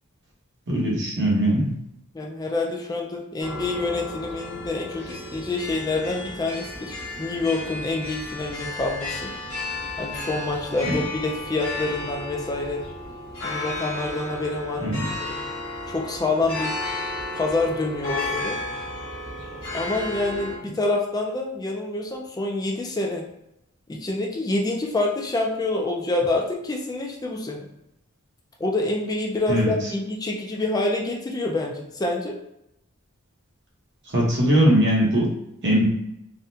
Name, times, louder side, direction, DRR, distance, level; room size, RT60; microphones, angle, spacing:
voice 1, 0.7-1.7 10.8-10.9 14.8-15.0 29.5-29.7 34.1-35.3 35.6-35.9, equal, 55° right, -4 dB, 1.0 m, -20 dB
voice 2, 2.1-9.3 10.0-12.8 13.4-15.4 15.9-16.8 17.3-18.6 19.7-20.5 20.7-23.2 23.9-27.7 28.6-32.4, left 2 dB, 20° left, 0 dB, 0.4 m, -27 dB
sound 1, 3.4-20.6, left 2 dB, 70° left, 1.0 m, -33 dB
3.5 x 2.2 x 2.7 m, 0.83 s
head